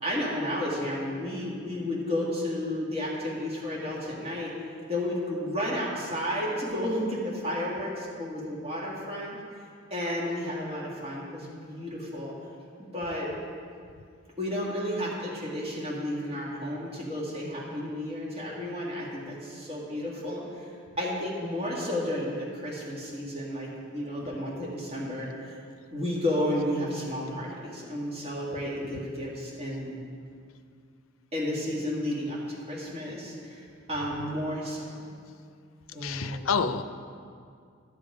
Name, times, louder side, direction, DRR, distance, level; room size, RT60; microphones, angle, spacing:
voice 1, 0.0-4.5 4.9-9.3 9.9-12.3 12.9-13.3 14.4-20.7 21.0-25.6 25.9-29.9 31.3-34.8 35.9-36.4, left 1 dB, 30° right, -5 dB, 2.1 m, -32 dB
voice 2, 36.0-36.8, left 5 dB, 85° left, 11 dB, 0.5 m, -28 dB
13.0 x 6.8 x 5.0 m, 2.3 s
head